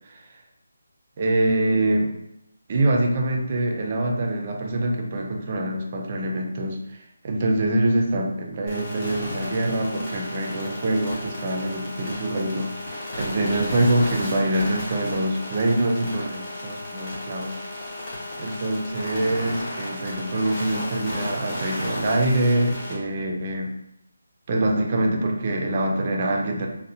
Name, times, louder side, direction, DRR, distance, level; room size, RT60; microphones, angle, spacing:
voice 1, 1.2-2.2 2.7-6.8 7.2-17.6 18.4-23.7 24.5-26.7, right 1 dB, 25° right, 2 dB, 0.3 m, -24 dB
sound 1, 8.7-22.9, left 1 dB, 20° left, 0.8 m, -34 dB
3.4 x 2.0 x 2.7 m, 0.83 s
figure-of-eight pair, 175°, 0 cm